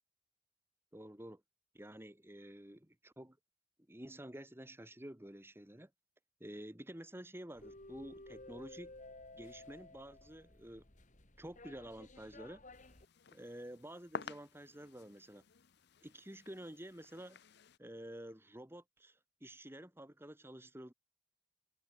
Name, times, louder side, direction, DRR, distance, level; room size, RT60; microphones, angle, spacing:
voice 1, 0.9-1.4 1.7-3.4 3.9-5.9 6.4-8.9 9.3-10.9 11.4-12.6 13.3-15.5 16.0-17.4 17.8-20.9, right 1 dB, 10° right, 1.7 m, -50 dB
sound 1, 7.6-13.1, left 2 dB, 40° left, 2.5 m, -55 dB
sound 2, 12.7-17.8, left 5 dB, 55° left, 0.7 m, -51 dB
head